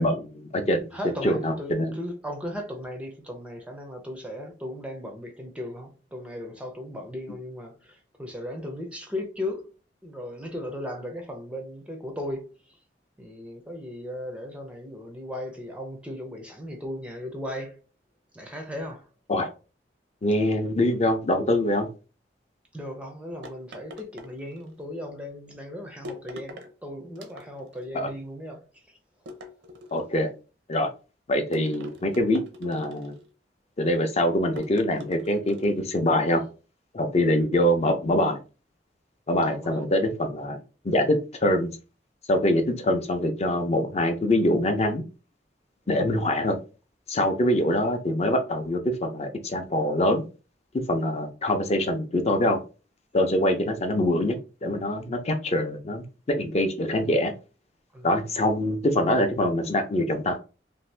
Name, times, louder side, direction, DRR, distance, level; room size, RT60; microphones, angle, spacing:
voice 1, 0.0-0.8 1.2-1.9 19.3-19.5 20.2-21.9 27.9-28.1 29.9-30.3 30.7-30.9 31.3-33.2 33.8-36.5 36.9-38.4 39.3-40.6 40.8-41.7 42.3-45.0 45.9-46.6 47.1-50.3 50.7-52.6 53.1-57.3 58.0-60.4, left 1 dB, 40° left, 0.6 m, -24 dB
voice 2, 0.9-9.7 10.0-12.8 13.2-17.8 18.3-19.1 22.7-28.7 39.5-39.8 57.9-58.2, left 1 dB, 5° right, 0.5 m, -37 dB
sound 1, 23.4-24.8 26.0-26.7 27.1-27.8 29.3-30.2 31.5-33.3 34.5-35.8, left 1 dB, 75° right, 0.6 m, -43 dB
2.6 x 2.5 x 3.2 m
head